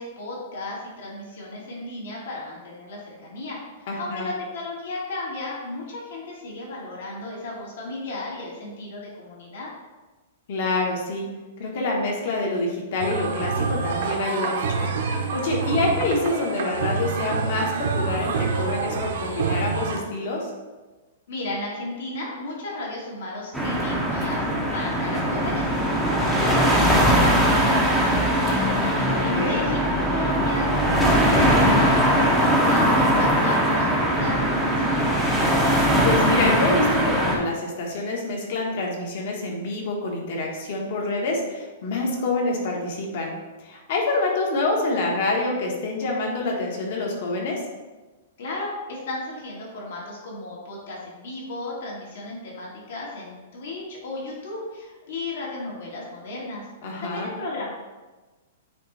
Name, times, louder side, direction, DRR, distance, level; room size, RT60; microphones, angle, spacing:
voice 1, 0.0-3.6 4.0-9.7 21.3-24.4 24.7-35.3 48.4-56.6 57.0-57.7, left 2 dB, 60° left, -4 dB, 2.1 m, -34 dB
voice 2, 3.9-4.3 10.5-11.3 11.6-14.8 15.3-20.5 29.1-29.6 36.0-43.3 43.6-47.6 56.8-57.3, left 2 dB, 45° left, 0 dB, 1.4 m, -26 dB
sound 1, 13.0-20.0, right 5 dB, 55° right, 0.9 m, -27 dB
sound 2, 23.5-37.4, equal, ahead, 0.7 m, -20 dB
9.1 x 3.1 x 4.2 m, 1.2 s
hypercardioid pair, 175°, 0 cm